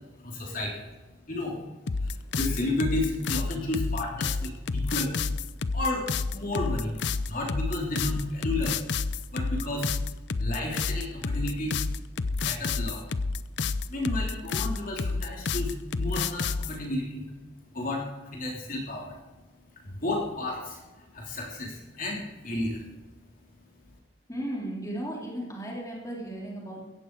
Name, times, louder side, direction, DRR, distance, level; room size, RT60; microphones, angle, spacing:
voice 1, 0.1-0.8 1.3-1.6 2.0-5.1 5.7-7.0 7.3-8.8 9.3-9.9 10.4-11.8 12.4-13.0 13.9-17.3 17.7-19.2 19.7-20.8 21.1-22.8, left 2 dB, 45° left, -2 dB, 3.4 m, -32 dB
sound 1, 1.9-16.8, left 4 dB, 70° left, 0.6 m, -29 dB
voice 2, 24.3-26.8, right 1 dB, 15° left, -3 dB, 3.5 m, -35 dB
17.0 x 14.5 x 4.7 m, 1.2 s
head